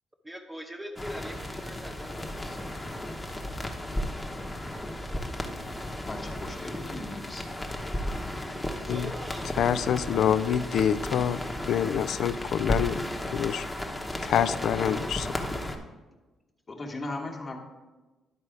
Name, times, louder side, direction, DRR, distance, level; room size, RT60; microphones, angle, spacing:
voice 1, 0.2-2.6 8.8-9.5, equal, 15° right, 2 dB, 0.8 m, -42 dB
sound 1, 1.0-15.8, left 1 dB, 10° left, 0.9 m, -34 dB
voice 2, 6.1-7.4 9.5-9.6 16.7-17.6, left 2 dB, 35° left, 3 dB, 1.2 m, -38 dB
voice 3, 9.6-11.4 11.6-13.0 13.3-13.7 14.2-15.3, left 9 dB, 70° left, 15 dB, 0.3 m, -26 dB
10.5 x 4.1 x 4.8 m, 1.2 s
cardioid pair, 90°, 0 cm